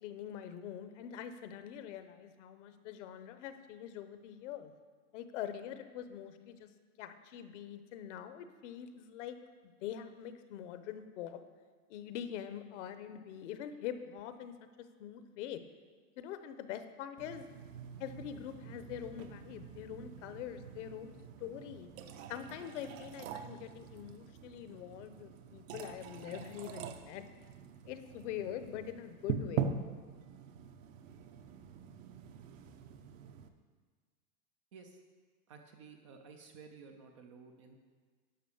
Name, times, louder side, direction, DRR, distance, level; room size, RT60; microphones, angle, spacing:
voice 1, 0.0-4.7 5.1-6.7 7.0-9.4 9.8-11.4 11.9-14.5 15.0-15.6 16.2-17.5 18.0-21.1 21.4-21.9 22.3-27.2 27.8-29.7, left 10 dB, 55° left, 10 dB, 0.9 m, -44 dB
sound 1, 17.2-33.5, right 7 dB, 60° right, 0.9 m, -44 dB
voice 2, 35.5-37.7, right 5 dB, 25° right, 4 dB, 0.3 m, -54 dB
11.0 x 5.8 x 7.0 m, 1.5 s
supercardioid pair, 165°, 44 cm